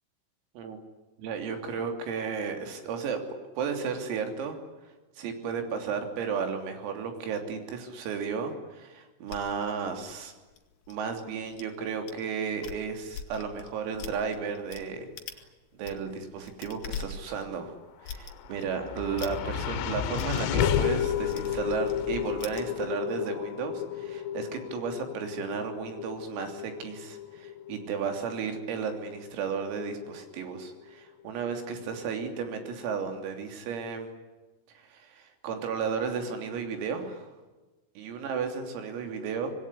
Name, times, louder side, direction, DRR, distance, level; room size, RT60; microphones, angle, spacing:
voice 1, 1.2-3.2 3.6-4.6 5.2-10.3 10.9-15.1 15.4-15.5 15.7-17.7 18.0-34.1 34.8-37.3 38.0-39.6, right 6 dB, 85° right, 5 dB, 5.9 m, -34 dB
sound 1, 9.3-11.6 12.1-12.2 12.5-14.8 15.2-15.5 15.7-22.6, left 7 dB, 55° left, 3.2 m, -42 dB
sound 2, 18.0-30.4, left 10 dB, 90° left, 4.0 m, -33 dB
26.0 x 21.0 x 10.0 m, 1.2 s
omnidirectional pair, 5.9 m